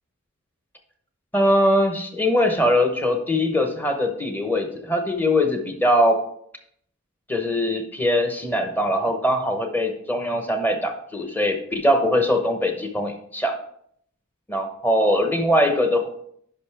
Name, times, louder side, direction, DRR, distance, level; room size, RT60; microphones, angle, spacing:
voice 1, 1.3-6.2 7.3-13.6 14.5-16.1, left 1 dB, 10° left, 5 dB, 0.9 m, -21 dB
10.5 x 5.5 x 3.4 m, 0.67 s
head